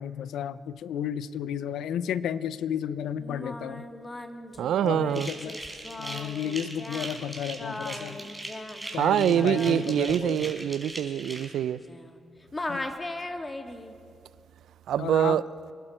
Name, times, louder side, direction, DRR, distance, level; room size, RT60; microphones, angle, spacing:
voice 1, 0.0-3.9 4.8-5.6 6.0-8.3 8.9-10.5 12.7-12.9 15.0-15.4, left 9 dB, 80° left, 0.5 m, -33 dB
Singing, 3.2-12.2 12.5-13.9, left 2 dB, 25° left, 1.4 m, -39 dB
voice 2, 4.6-5.3 9.0-11.8 14.9-15.4, right 10 dB, 80° right, 0.4 m, -25 dB
sound 1, 5.1-11.5, right 2 dB, 10° right, 4.0 m, -40 dB
26.5 x 11.5 x 4.4 m
supercardioid pair, 50°, 0 cm